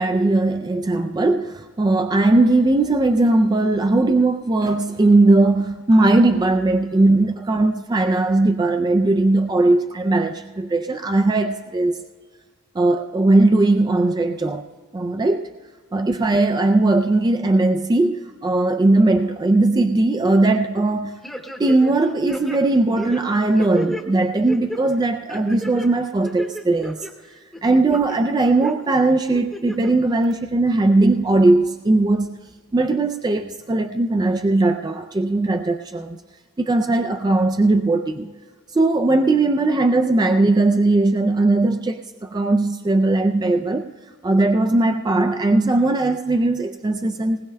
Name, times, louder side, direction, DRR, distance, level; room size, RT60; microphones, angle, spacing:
voice 1, 0.0-12.0 12.8-14.7 14.9-15.5 15.9-21.2 21.6-27.1 27.6-32.4 32.7-36.2 36.6-38.3 38.7-43.9 44.2-47.5, right 2 dB, 20° right, 6 dB, 0.3 m, -19 dB
sound 1, 21.2-22.0 22.3-24.0 24.5-24.8 25.3-25.9 26.2-27.1 27.5-28.2 28.6-28.7 29.3-29.9 30.3-30.4, equal, ahead, 0.8 m, -33 dB
20.5 x 19.5 x 2.2 m, 1.5 s
head